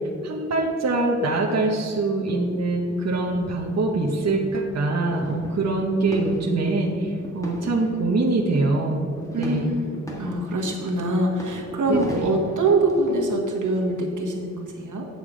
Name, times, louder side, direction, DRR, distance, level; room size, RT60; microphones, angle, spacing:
voice 1, 0.2-9.1 9.4-9.8 11.9-12.3, right 2 dB, 60° right, -1 dB, 1.0 m, -24 dB
sound 1, 2.1-13.1, right 1 dB, 10° left, 1.8 m, -38 dB
voice 2, 9.3-15.1, right 2 dB, 90° right, 0 dB, 1.5 m, -24 dB
9.3 x 6.9 x 5.0 m, 2.5 s
wide cardioid pair, 95°, 30 cm